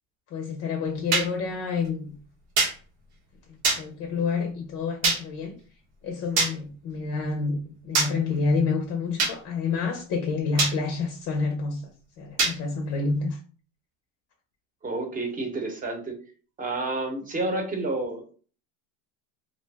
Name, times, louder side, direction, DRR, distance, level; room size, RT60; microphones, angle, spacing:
voice 1, 0.3-2.1 3.7-5.6 6.0-13.4, left 4 dB, 45° left, 0.6 m, -28 dB
sound 1, 1.1-1.3 2.6-2.7 3.6-3.8 5.0-5.2 6.4-6.5 7.9-8.1 9.2-9.3 10.6-10.7 12.4-12.5, right 3 dB, 70° right, 1.0 m, -22 dB
voice 2, 14.8-16.2 16.6-18.3, right 2 dB, 20° right, 0.9 m, -30 dB
2.5 x 2.1 x 3.3 m
supercardioid pair, 115°, 38 cm